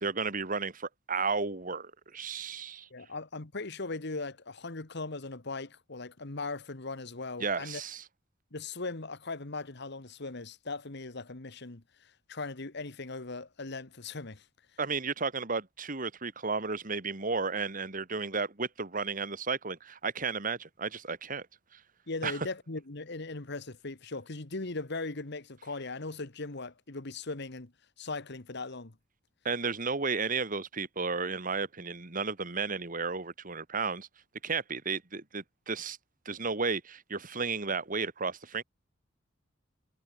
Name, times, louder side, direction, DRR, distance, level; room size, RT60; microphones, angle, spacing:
voice 1, 0.0-2.9 7.4-8.0 14.8-21.5 22.2-22.4 29.4-34.1 34.4-36.0 36.3-38.6, right 4 dB, 45° right, 2.0 m, -33 dB
voice 2, 2.9-7.8 8.5-14.4 22.1-27.7 28.0-28.9, left 3 dB, 60° left, 1.6 m, -39 dB
head